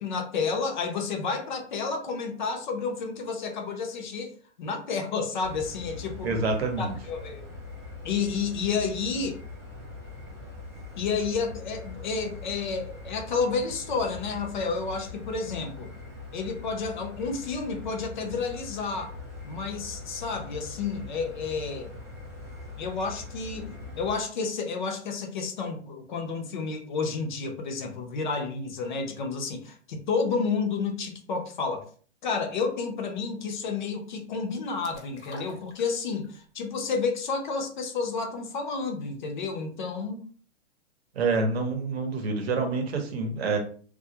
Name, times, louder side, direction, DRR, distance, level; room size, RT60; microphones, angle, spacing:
voice 1, 0.0-6.4 6.8-7.5 8.0-9.4 11.0-15.9 16.3-19.1 19.4-22.0 22.8-23.7 24.0-31.9 32.2-40.3, left 4 dB, 45° left, 4 dB, 0.5 m, -30 dB
sound 1, 5.4-24.1, left 3 dB, 10° right, 0.7 m, -42 dB
voice 2, 6.2-6.9 41.2-43.6, right 3 dB, 60° right, 4 dB, 0.8 m, -27 dB
sound 2, 34.8-36.4 36.7-36.8, left 3 dB, 75° left, 0.9 m, -44 dB
2.3 x 2.0 x 2.7 m, 0.43 s
hypercardioid pair, 140°, 35 cm